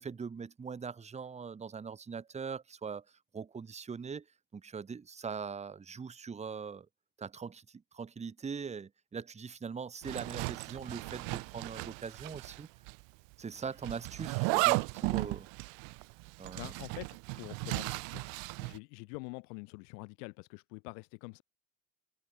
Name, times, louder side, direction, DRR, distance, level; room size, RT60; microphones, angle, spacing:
voice 1, 0.0-3.0 3.3-4.3 4.5-6.9 7.2-12.7 13.4-15.5 16.4-16.7, right 6 dB, 15° right, 0.6 m, -41 dB
Zipper (clothing), 10.0-12.6 12.9-13.0 13.8-18.8, right 34 dB, 65° right, 0.5 m, -35 dB
voice 2, 16.5-18.3 18.6-21.4, left 33 dB, 75° left, 1.6 m, -46 dB
hypercardioid pair, 60°, 48 cm